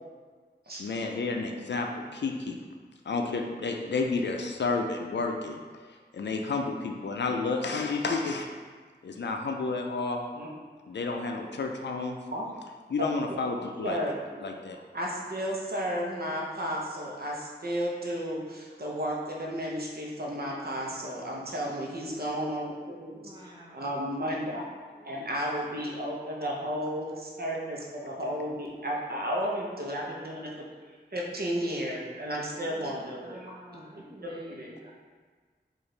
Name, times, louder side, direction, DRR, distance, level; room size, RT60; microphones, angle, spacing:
voice 1, 0.8-2.6 3.1-5.6 5.9-8.5 9.0-10.2 10.9-12.2 12.9-14.0 14.4-14.8, left 3 dB, 70° left, 3 dB, 0.4 m, -31 dB
voice 2, 13.8-14.1 14.9-23.2 23.7-24.7 25.0-30.5 31.1-33.5 33.7-33.8 34.2-34.7, equal, 55° right, -3 dB, 0.8 m, -33 dB
voice 3, 23.2-23.8 24.9-25.1 32.7-32.9 33.2-34.9, right 1 dB, 25° right, -5 dB, 1.0 m, -50 dB
4.6 x 2.5 x 3.2 m, 1.5 s
cardioid pair, 40°, 19 cm